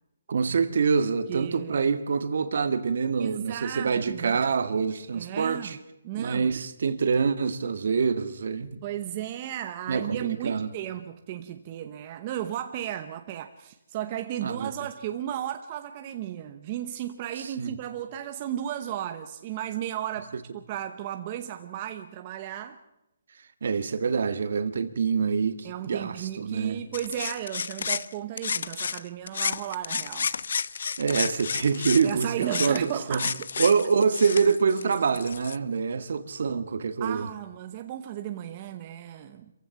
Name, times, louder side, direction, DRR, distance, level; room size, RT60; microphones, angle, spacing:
voice 1, 0.3-5.8 6.2-8.8 9.9-10.7 14.4-14.7 17.4-17.7 23.6-26.9 31.0-33.2 33.6-37.3, right 5 dB, 55° right, 1.6 m, -26 dB
voice 2, 1.3-1.9 3.2-4.4 5.1-5.8 6.0-6.5 8.8-22.8 25.6-30.3 32.0-33.3 37.0-39.5, right 11 dB, 25° right, 0.9 m, -34 dB
sound 1, 26.9-29.0 29.3-35.6, left 6 dB, 60° left, 0.7 m, -31 dB
26.5 x 15.5 x 7.0 m
hypercardioid pair, 170°, 0 cm